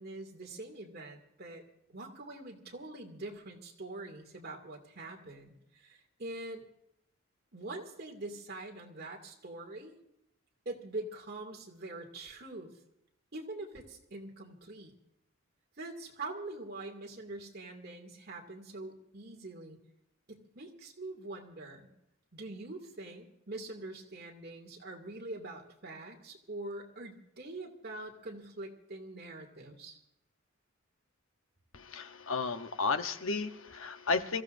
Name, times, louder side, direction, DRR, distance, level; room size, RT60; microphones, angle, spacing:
voice 1, 0.0-1.6 1.9-6.6 7.5-9.9 10.6-12.7 13.3-14.9 15.8-19.8 20.3-21.9 22.3-30.0, right 2 dB, 50° right, 2 dB, 2.4 m, -44 dB
voice 2, 31.7-34.4, left 4 dB, 75° left, 8 dB, 1.0 m, -33 dB
26.0 x 15.5 x 2.6 m, 0.80 s
head